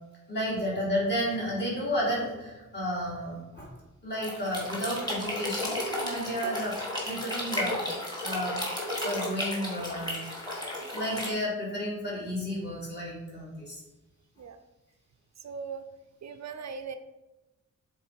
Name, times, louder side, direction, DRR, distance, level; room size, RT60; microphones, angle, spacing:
voice 1, 0.3-3.7 4.0-8.6 9.0-10.2 10.9-13.8, equal, 35° left, -5 dB, 2.5 m, -32 dB
sound 1, 4.1-11.3, left 1 dB, 15° left, 1.8 m, -33 dB
voice 2, 15.4-15.9 16.2-17.0, right 5 dB, 60° right, 8 dB, 0.5 m, -39 dB
7.2 x 3.9 x 4.5 m, 1.0 s
wide cardioid pair, 150°, 31 cm